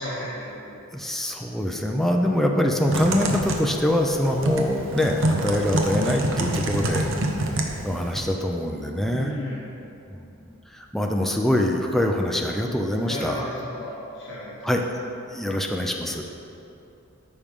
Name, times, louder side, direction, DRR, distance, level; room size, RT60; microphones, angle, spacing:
voice 1, 0.0-0.8 9.1-9.6 13.1-14.6 15.6-15.8, equal, 60° left, -8 dB, 1.3 m, -34 dB
voice 2, 0.9-7.1 7.8-9.3 10.1-13.5 14.6-14.8 15.3-16.2, left 1 dB, ahead, 1 dB, 0.5 m, -24 dB
Typing, 2.9-8.2, right 1 dB, 65° right, 0.9 m, -26 dB
13.5 x 5.4 x 3.6 m, 2.8 s
head